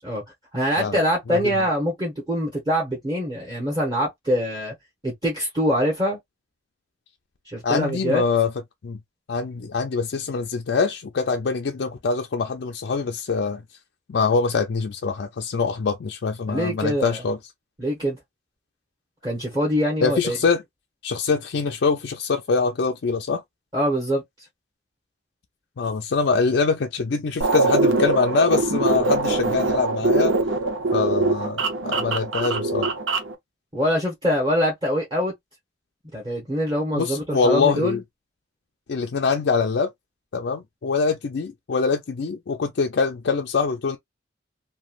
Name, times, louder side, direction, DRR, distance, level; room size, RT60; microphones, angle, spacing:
voice 1, 0.5-4.7 5.0-6.2 7.5-8.2 16.5-17.2 17.8-18.2 19.2-20.4 23.7-24.2 33.7-35.3 36.1-38.0, equal, 20° right, 0.9 m, -24 dB
voice 2, 7.6-8.5 8.8-9.0 9.3-13.6 14.1-17.4 20.0-20.6 21.0-23.4 25.8-30.3 30.9-32.9 36.9-38.0 38.9-39.9 40.3-44.0, left 4 dB, 60° left, 0.4 m, -24 dB
sound 1, 27.4-33.3, right 3 dB, 75° right, 0.7 m, -22 dB
3.0 x 2.2 x 2.4 m
head